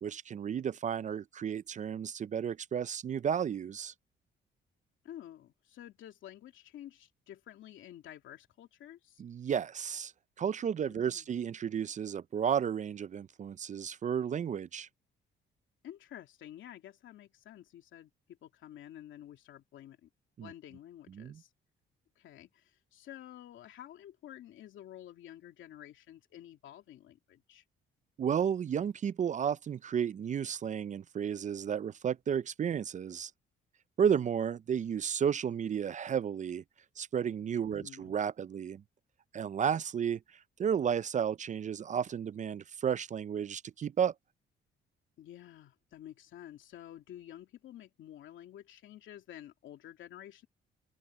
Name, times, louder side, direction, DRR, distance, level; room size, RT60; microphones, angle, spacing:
voice 1, 0.0-3.9 9.2-10.1 10.4-14.9 20.4-20.5 21.1-21.4 28.2-33.3 34.0-36.6 37.0-38.8 39.3-44.1, right 8 dB, 40° right, 0.4 m, -33 dB
voice 2, 5.0-9.2 10.9-11.3 15.8-20.1 20.4-21.5 22.2-27.6 37.6-38.1 45.2-50.5, left 12 dB, 80° left, 2.8 m, -50 dB
open air
cardioid pair, 90°, 20 cm